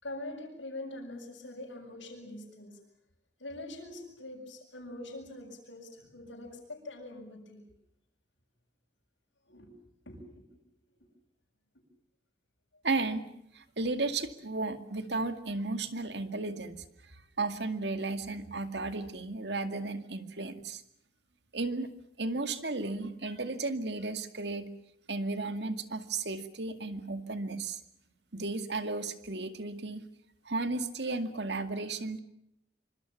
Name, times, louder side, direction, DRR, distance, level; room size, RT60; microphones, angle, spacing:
voice 1, 0.0-2.8 3.4-7.6 9.5-9.7 10.1-10.5, left 1 dB, 90° left, -3 dB, 7.0 m, -44 dB
voice 2, 12.8-13.3 13.5-16.8 17.4-20.8 21.5-21.9 22.2-24.7 25.1-27.8 28.3-30.1 30.5-32.2, right 3 dB, 65° right, 9 dB, 2.2 m, -34 dB
26.0 x 25.5 x 7.3 m, 0.75 s
head